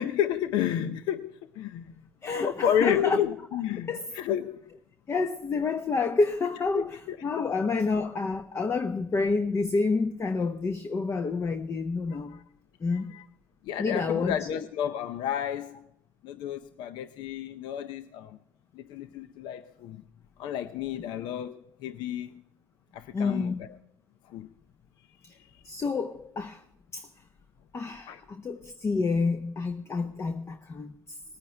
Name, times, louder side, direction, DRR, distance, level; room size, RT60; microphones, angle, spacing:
voice 1, 0.0-1.9 2.3-4.7 6.7-7.2 12.1-12.4 12.9-13.2 13.6-15.9 16.2-18.4 18.7-20.0 20.4-22.4 22.9-23.7 24.3-24.5 25.5-25.6 28.1-28.2, left 9 dB, 80° left, 0.6 m, -31 dB
voice 2, 2.2-3.2 3.9-4.1 5.1-12.4 12.8-13.1 13.8-14.6 23.1-23.6 25.2-25.3 25.6-26.6 26.9-27.1 27.7-31.2, left 4 dB, 35° left, 0.9 m, -29 dB
20.0 x 9.1 x 3.3 m
supercardioid pair, 85°, 8 cm